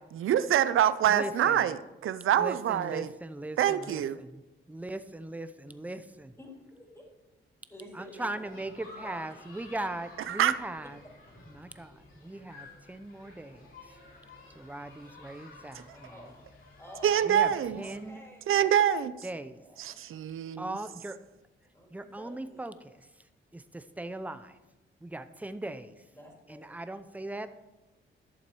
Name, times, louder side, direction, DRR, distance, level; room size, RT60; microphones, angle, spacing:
voice 1, 0.1-3.1 3.6-4.2 10.3-10.5 17.0-17.8 18.5-19.1 19.8-20.6, right 10 dB, 80° right, 14 dB, 0.5 m, -25 dB
voice 2, 1.1-1.7 2.4-4.4 4.7-6.3 7.9-11.0 11.5-13.7 14.5-16.2 17.2-18.3 19.2-19.6 20.6-21.2 21.9-23.1 23.5-24.6 25.0-25.9 26.5-27.5, right 2 dB, 5° right, 11 dB, 0.6 m, -39 dB
voice 3, 6.4-7.0 7.7-8.5 8.8-9.3 15.9-16.3 16.8-18.6 19.4-20.0 21.7-22.6 26.1-26.7, equal, 10° left, -1 dB, 3.0 m, -50 dB
sound 1, 8.5-18.1, left 2 dB, 70° left, 3.9 m, -52 dB
11.5 x 7.1 x 4.7 m, 1.0 s
cardioid pair, 90°, 21 cm